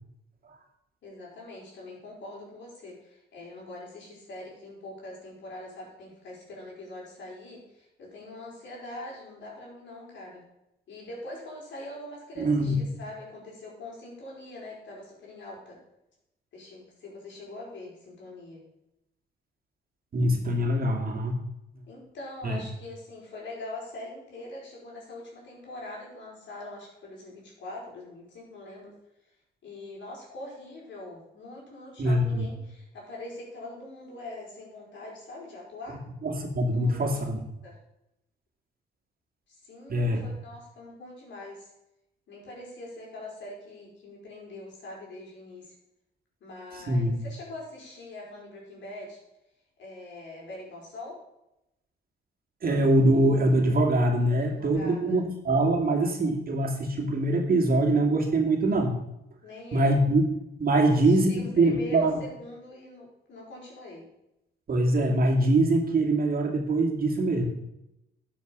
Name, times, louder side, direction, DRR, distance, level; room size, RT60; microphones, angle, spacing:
voice 1, 1.0-10.4 10.9-15.8 16.5-18.7 21.9-28.9 29.6-36.0 36.7-37.8 39.5-41.7 42.3-45.7 46.4-49.2 49.8-51.2 54.3-55.2 59.4-60.0 60.8-64.1, left 2 dB, 65° left, -3 dB, 5.1 m, -43 dB
voice 2, 12.4-12.8 20.1-21.4 22.4-22.6 32.0-32.5 36.2-37.4 39.9-40.2 46.9-47.1 52.6-58.9 59.7-60.2 60.6-62.2 64.7-67.5, right 1 dB, 50° right, 2 dB, 2.4 m, -23 dB
12.0 x 7.2 x 5.3 m, 0.87 s
cardioid pair, 90°, 20 cm